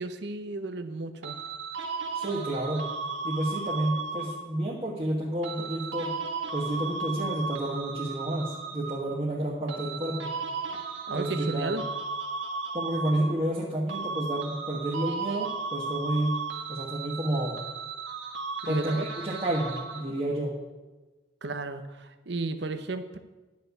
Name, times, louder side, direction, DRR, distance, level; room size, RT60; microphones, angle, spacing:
voice 1, 0.0-1.4 11.1-11.8 18.6-19.1 21.4-23.2, right 2 dB, 65° right, 9 dB, 0.8 m, -34 dB
sound 1, 1.2-4.6 5.4-9.2 9.7-13.6 13.9-20.2, right 4 dB, 85° right, 1.8 m, -35 dB
voice 2, 2.1-2.9 3.2-6.1 6.5-10.3 11.1-11.8 12.7-16.4 16.7-17.6 18.7-20.6, right 1 dB, 30° right, -4 dB, 1.4 m, -30 dB
10.5 x 6.6 x 8.3 m, 1.2 s
head